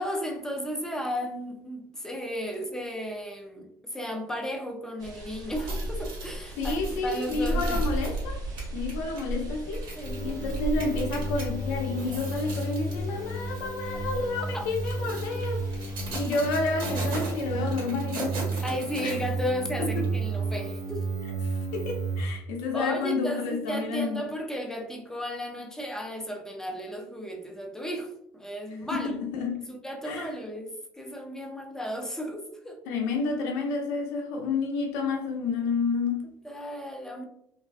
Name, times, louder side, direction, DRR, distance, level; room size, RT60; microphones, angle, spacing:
voice 1, 0.0-7.8 10.0-10.2 14.1-14.7 18.6-21.1 22.7-29.1 29.7-32.8 36.4-37.2, equal, 5° left, 0.5 m, -34 dB
sound 1, 5.0-17.7, right 1 dB, 45° right, 0.8 m, -36 dB
sound 2, 5.4-11.5 11.9-13.1 13.5-13.7 14.5-19.6 20.0-20.1, right 3 dB, 65° right, 1.2 m, -40 dB
voice 2, 6.6-8.5 8.7-9.9 10.2-18.4 19.0-19.2 19.8-20.1 21.4-24.3 28.9-29.7 30.0-30.3 32.9-36.3, left 3 dB, 85° left, 0.4 m, -30 dB
sound 3, 10.0-22.2, right 3 dB, 60° left, 0.9 m, -33 dB
2.3 x 2.2 x 2.4 m
supercardioid pair, 85°, 9 cm